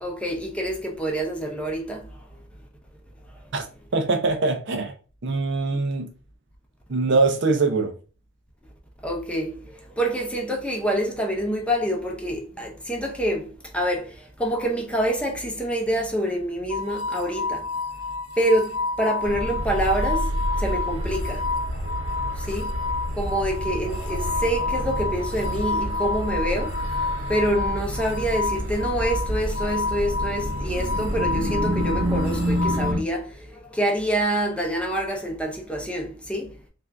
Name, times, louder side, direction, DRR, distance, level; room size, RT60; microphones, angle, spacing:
voice 1, 0.0-2.3 9.0-17.7 18.4-20.3 20.6-21.5 22.4-22.8 23.2-26.8 27.3-36.6, right 1 dB, 5° left, 0.6 m, -26 dB
voice 2, 3.9-4.9 5.2-6.1 6.9-8.0, right 3 dB, 60° right, 0.6 m, -22 dB
sound 1, 16.7-32.9, left 3 dB, 80° left, 0.5 m, -30 dB
sound 2, 19.2-33.0, equal, 85° right, 1.0 m, -28 dB
3.4 x 2.5 x 3.4 m
head